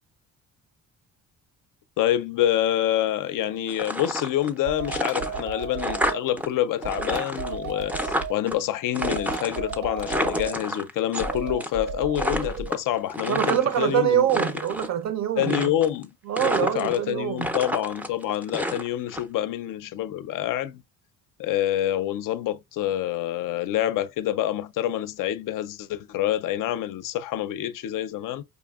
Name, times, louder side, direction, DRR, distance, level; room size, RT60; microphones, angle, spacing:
voice 1, 2.0-14.3 15.4-16.1 16.4-20.8 21.4-28.4, left 12 dB, 65° left, 0.5 m, -27 dB
sound 1, 3.7-4.6 4.8-6.5 6.7-8.5 8.9-11.3 11.6-11.9 12.1-13.8 14.2-14.9 15.4-16.0 16.4-17.1 17.4-19.2, equal, 5° right, 0.4 m, -29 dB
sound 2, 4.6-6.2 6.8-8.3 9.0-10.5 11.2-12.7, right 5 dB, 80° right, 1.3 m, -33 dB
voice 2, 13.3-15.7 16.3-17.5, right 10 dB, 50° right, 0.6 m, -25 dB
5.2 x 2.6 x 2.3 m
cardioid pair, 135°, 36 cm